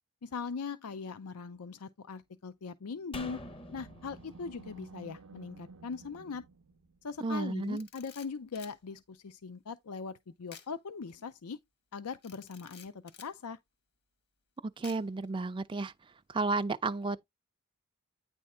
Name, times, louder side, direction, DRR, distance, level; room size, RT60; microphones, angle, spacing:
voice 1, 0.2-3.4 3.7-6.4 7.0-11.6 11.9-13.6, left 5 dB, 80° left, 0.5 m, -40 dB
Animal, 2.8-7.3, right 4 dB, 80° right, 0.6 m, -54 dB
sound 1, 3.1-6.5 6.8-6.9, left 1 dB, 25° left, 0.7 m, -48 dB
voice 2, 7.2-7.9 14.8-15.9 16.3-17.3, right 3 dB, 20° right, 0.4 m, -32 dB
Camera, 7.6-8.8 10.5-10.7 11.1-11.2 12.2-13.3 14.8-15.3, left 7 dB, 50° left, 1.4 m, -52 dB
9.4 x 3.5 x 4.2 m
head